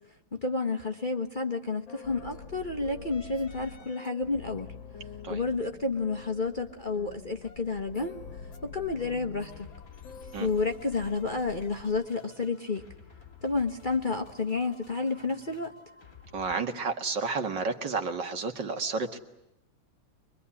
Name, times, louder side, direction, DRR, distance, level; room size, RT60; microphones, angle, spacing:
voice 1, 0.3-4.7 5.3-8.2 8.6-9.7 10.4-12.8 13.4-15.7, left 3 dB, 30° left, 4 dB, 1.3 m, -30 dB
sound 1, 1.9-12.0, left 5 dB, 75° left, 2.2 m, -46 dB
sound 2, 9.4-16.6, left 6 dB, 45° left, 2.9 m, -53 dB
voice 2, 16.3-19.2, right 4 dB, 65° right, 6 dB, 2.4 m, -31 dB
24.5 x 23.0 x 9.8 m, 0.87 s
omnidirectional pair, 2.1 m